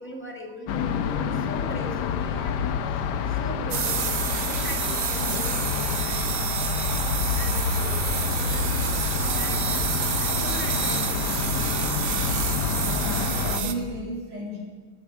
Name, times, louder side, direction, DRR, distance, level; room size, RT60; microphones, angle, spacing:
voice 1, 0.0-6.7 7.3-11.4, left 1 dB, 5° left, 2 dB, 1.2 m, -41 dB
sound 1, 0.7-13.6, left 7 dB, 65° left, 1.1 m, -28 dB
sound 2, 3.7-13.7, right 7 dB, 60° right, 0.8 m, -28 dB
voice 2, 13.0-14.6, equal, 85° right, -4 dB, 4.4 m, -33 dB
10.0 x 9.3 x 8.3 m, 1.5 s
omnidirectional pair, 2.3 m